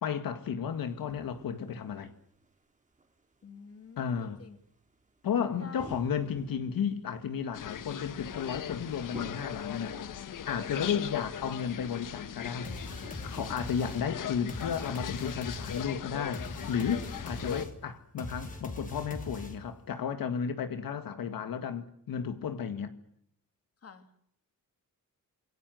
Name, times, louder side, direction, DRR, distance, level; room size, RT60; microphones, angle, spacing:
voice 1, 0.0-2.1 4.0-4.4 5.2-9.9 10.5-12.7 13.2-22.9, left 7 dB, 85° left, 2.0 m, -33 dB
sound 1, 0.7-13.5, right 3 dB, 20° right, 3.1 m, -53 dB
voice 2, 3.4-4.6 5.6-5.9 13.5-13.8 23.8-24.3, left 6 dB, 45° left, 2.5 m, -50 dB
sound 2, 7.5-17.7, left 9 dB, 65° left, 1.3 m, -39 dB
sound 3, 12.6-19.8, left 2 dB, 25° left, 3.5 m, -42 dB
27.0 x 23.5 x 7.8 m
wide cardioid pair, 165°, 34 cm